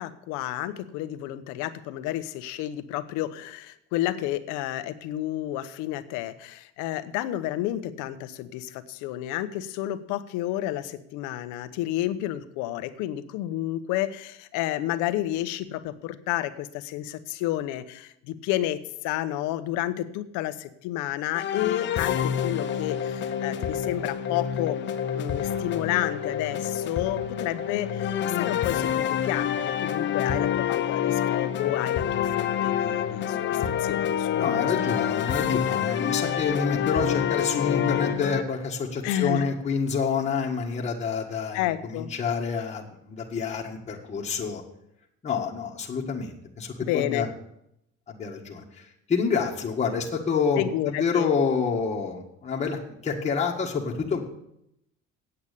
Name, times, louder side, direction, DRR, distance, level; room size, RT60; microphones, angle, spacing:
voice 1, 0.0-24.8 25.1-34.7 39.0-39.5 41.5-42.1 46.8-47.3 50.6-51.3, left 14 dB, 90° left, 12 dB, 0.9 m, -31 dB
sound 1, 21.3-38.4, left 9 dB, 40° left, 0.8 m, -27 dB
voice 2, 34.3-44.6 45.2-47.3 48.1-54.2, left 5 dB, 20° left, -2 dB, 1.7 m, -28 dB
8.7 x 8.2 x 8.3 m, 0.78 s
cardioid pair, 140°, 29 cm